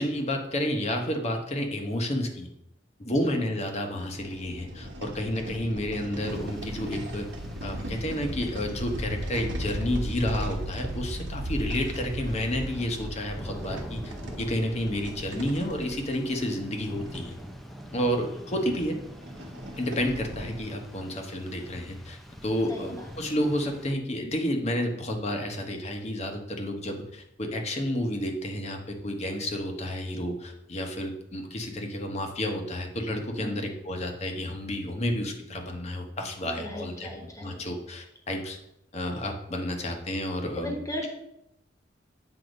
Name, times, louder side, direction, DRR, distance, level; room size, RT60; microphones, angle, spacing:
voice 1, 0.0-2.5 3.0-7.3 7.6-17.3 17.9-19.0 19.8-37.1 37.4-38.6 38.9-40.7, left 1 dB, 35° left, 3 dB, 0.9 m, -30 dB
voice 2, 3.0-3.4 22.7-23.1 33.4-33.6 36.6-37.6 40.6-41.1, left 1 dB, 20° left, 1 dB, 1.1 m, -37 dB
sound 1, 4.0-17.3 18.0-18.1 18.4-18.5 19.0-20.6, equal, 90° right, 1.1 m, -37 dB
Rain, 6.3-23.9, equal, ahead, 0.5 m, -45 dB
7.9 x 2.7 x 5.1 m, 0.80 s
head